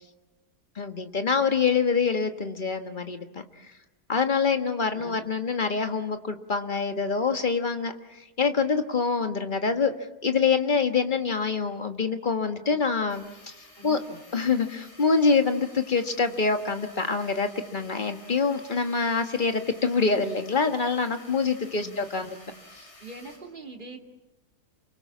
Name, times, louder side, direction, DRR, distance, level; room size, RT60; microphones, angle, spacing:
voice 1, 0.7-3.3 4.1-7.9 8.4-13.5 13.8-14.0 14.3-22.3, left 5 dB, 30° left, 7 dB, 1.5 m, -25 dB
voice 2, 4.9-5.3 13.8-14.2 21.7-22.4 23.0-24.0, right 2 dB, 30° right, 3 dB, 2.6 m, -43 dB
sound 1, 13.1-23.4, left 2 dB, 80° left, 7.9 m, -51 dB
28.5 x 24.0 x 7.3 m, 1.0 s
omnidirectional pair, 1.7 m